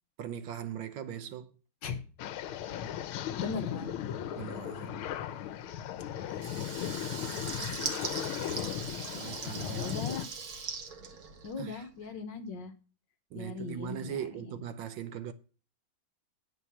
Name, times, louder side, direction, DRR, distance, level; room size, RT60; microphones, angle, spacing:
voice 1, 0.2-1.5 4.4-5.0 9.2-10.0 11.6-11.8 13.3-15.3, right 9 dB, 70° right, 1.3 m, -40 dB
sound 1, 2.2-10.3, left 10 dB, 85° left, 1.6 m, -37 dB
voice 2, 3.4-3.9 6.8-6.9 7.8-8.5 9.8-10.3 11.4-12.7 13.3-14.6, left 5 dB, 65° left, 1.6 m, -39 dB
Water tap faucet / Liquid, 6.3-11.8, right 5 dB, 50° right, 1.6 m, -40 dB
9.7 x 4.7 x 7.0 m
omnidirectional pair, 2.3 m